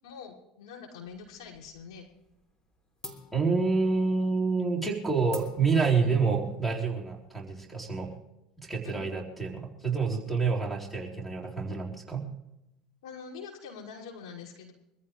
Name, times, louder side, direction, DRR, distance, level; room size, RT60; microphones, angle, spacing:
voice 1, 0.0-2.1 4.3-4.4 6.0-6.2 8.8-9.0 13.0-14.7, left 5 dB, 75° left, -4 dB, 5.9 m, -44 dB
sound 1, 1.1-2.0 2.3-2.7 3.0-8.2, left 2 dB, 25° left, 3.5 m, -49 dB
voice 2, 3.3-8.1 8.7-12.3, right 4 dB, ahead, 1 dB, 4.0 m, -28 dB
24.5 x 15.0 x 3.3 m, 0.87 s
hypercardioid pair, 75°, 3 cm